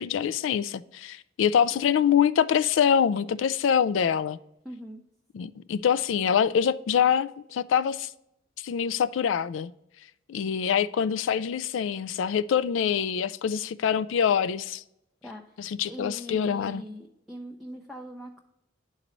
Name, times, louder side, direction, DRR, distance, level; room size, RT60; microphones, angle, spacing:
voice 1, 0.0-4.4 5.3-8.1 8.6-9.7 10.3-14.8 15.6-16.8, left 8 dB, 75° left, 0.3 m, -25 dB
voice 2, 4.6-5.0 15.2-15.6 15.9-18.4, equal, ahead, 0.5 m, -41 dB
11.0 x 3.9 x 3.0 m
head